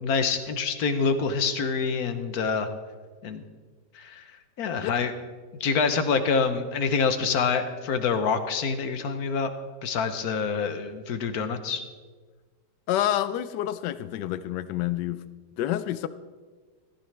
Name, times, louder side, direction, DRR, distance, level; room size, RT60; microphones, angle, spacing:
voice 1, 0.0-2.7 3.2-3.4 3.9-4.2 4.6-5.1 5.6-9.5 9.8-11.8, left 5 dB, 65° left, 9 dB, 1.4 m, -26 dB
voice 2, 12.9-15.2 15.6-16.1, left 12 dB, 90° left, 14 dB, 1.2 m, -28 dB
15.0 x 14.0 x 3.3 m, 1.4 s
omnidirectional pair, 1.8 m